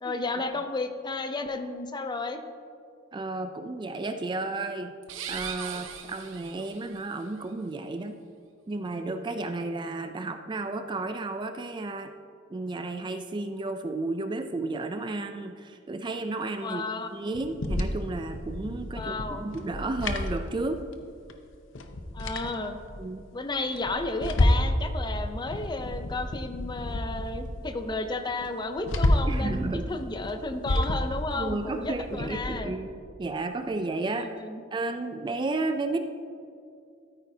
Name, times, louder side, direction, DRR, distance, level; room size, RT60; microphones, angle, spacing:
voice 1, 0.0-2.4 16.6-17.1 18.9-19.5 22.1-22.8 23.3-32.7 34.1-34.6, left 2 dB, 25° left, 7 dB, 0.6 m, -33 dB
voice 2, 3.1-4.9 5.3-8.2 8.7-12.1 12.5-20.9 23.0-23.3 29.3-30.0 30.7-30.8 31.3-34.3 34.7-36.1, right 2 dB, 25° right, 8 dB, 0.3 m, -32 dB
sound 1, 5.0-7.0, right 7 dB, 80° right, 0.8 m, -39 dB
sound 2, 17.3-21.0 21.3-21.4 21.7-23.0 23.5-24.8 25.1-27.7 28.0-28.1 28.4-29.5 30.1-32.6, left 1 dB, 75° left, 0.7 m, -30 dB
13.5 x 8.9 x 2.7 m, 2.4 s
head